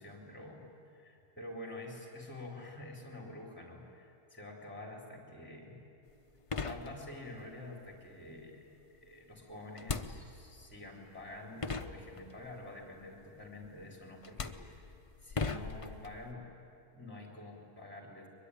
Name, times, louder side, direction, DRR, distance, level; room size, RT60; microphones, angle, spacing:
voice 1, 0.0-5.8 6.6-14.8 15.2-16.5 16.9-18.3, left 1 dB, 5° left, 1 dB, 3.8 m, -48 dB
sound 1, 6.1-6.2 6.5-7.4 9.8-10.6 11.3-11.4 11.6-12.5 13.6-13.8 14.2-16.3, left 4 dB, 35° left, 0.6 m, -39 dB
23.0 x 22.0 x 10.0 m, 2.8 s
omnidirectional pair, 1.6 m